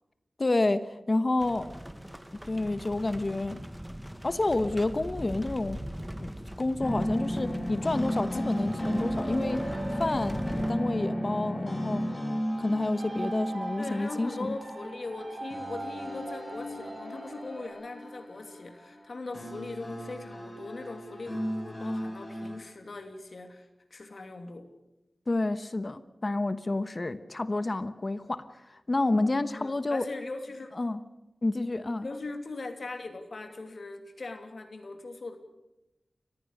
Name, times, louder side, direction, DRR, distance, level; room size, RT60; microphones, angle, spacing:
voice 1, 0.4-1.8 2.4-3.6 4.2-5.8 6.2-6.3 6.6-9.6 9.9-12.1 12.6-14.6 25.3-28.4 28.7-30.0 30.8-31.0 31.4-32.1, left 2 dB, 40° left, 12 dB, 1.1 m, -29 dB
sound 1, 1.4-10.7, equal, 10° right, 1.5 m, -40 dB
sound 2, 6.8-22.6, equal, 25° left, 6.8 m, -34 dB
sound 3, 9.2-17.7, right 2 dB, 55° right, 5.6 m, -41 dB
voice 2, 13.8-24.7 29.6-30.7 32.0-35.4, left 3 dB, 65° left, 6 dB, 2.8 m, -40 dB
29.5 x 15.0 x 6.6 m, 0.95 s
wide cardioid pair, 85°, 0 cm